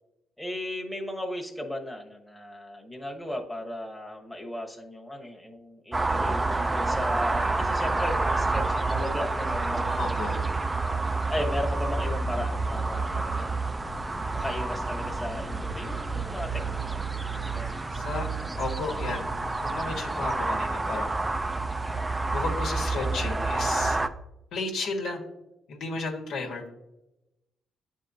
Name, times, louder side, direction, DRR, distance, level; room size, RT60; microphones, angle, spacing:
voice 1, 0.4-10.3 11.3-13.9 14.3-17.0 17.5-17.7, left 1 dB, 5° left, 0 dB, 1.1 m, -36 dB
sound 1, 5.9-24.1, right 3 dB, 15° right, 0.4 m, -28 dB
voice 2, 10.0-10.3 17.9-18.3 18.6-19.2 19.6-21.2 22.3-24.0 24.5-25.2 25.7-26.6, left 3 dB, 75° left, 1 dB, 1.3 m, -33 dB
9.7 x 3.7 x 2.7 m, 0.92 s
cardioid pair, 90°, 0 cm